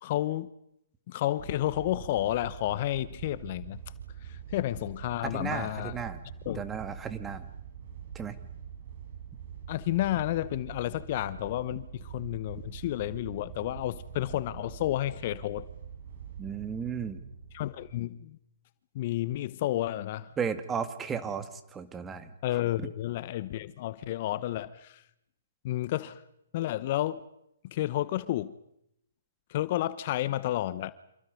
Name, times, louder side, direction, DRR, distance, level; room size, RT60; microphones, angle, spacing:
voice 1, 0.0-0.5 1.1-3.8 4.2-6.0 6.4-6.6 9.7-15.7 17.5-18.4 18.9-20.3 22.4-25.0 25.6-26.2 26.5-27.3 27.6-28.6 29.5-30.9, left 14 dB, 45° left, 0.9 m, -31 dB
sound 1, 1.4-17.9, right 8 dB, 50° right, 6.2 m, -45 dB
voice 2, 5.2-6.2 6.5-7.5 8.1-8.4 16.4-17.2 20.4-22.3, right 6 dB, 15° right, 2.1 m, -34 dB
28.5 x 27.5 x 5.4 m
hypercardioid pair, 130°, 0 cm